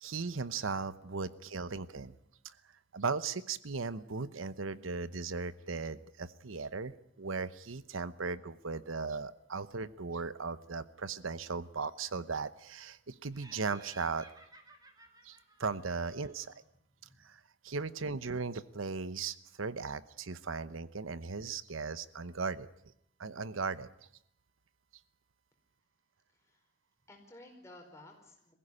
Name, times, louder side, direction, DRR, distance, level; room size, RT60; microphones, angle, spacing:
voice 1, 0.0-2.1 2.4-2.5 2.9-14.3 15.2-16.5 17.2-22.7 23.2-23.9, right 4 dB, 90° right, 15 dB, 0.9 m, -37 dB
Laughter, 13.3-16.6, right 2 dB, 20° right, 2.6 m, -57 dB
voice 2, 26.3-26.7 27.1-28.5, left 1 dB, 15° left, 2 dB, 4.8 m, -55 dB
22.0 x 15.5 x 9.8 m, 0.75 s
head